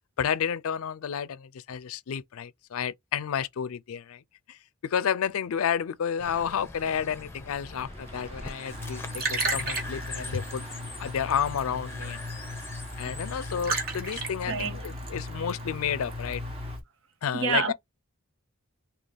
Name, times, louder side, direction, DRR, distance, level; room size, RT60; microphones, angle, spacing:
voice 1, 0.2-4.2 4.5-10.6 11.0-12.2 13.0-16.4 17.2-17.7, left 8 dB, 70° left, 0.4 m, -31 dB
sound 1, 5.3-16.8, right 2 dB, 25° right, 1.1 m, -46 dB
sound 2, 6.2-13.9, left 3 dB, 10° left, 0.8 m, -43 dB
Liquid, 8.7-16.8, right 1 dB, 40° right, 1.4 m, -35 dB
voice 2, 14.5-14.9 17.3-17.7, right 5 dB, 60° right, 0.9 m, -27 dB
3.9 x 2.8 x 3.4 m
head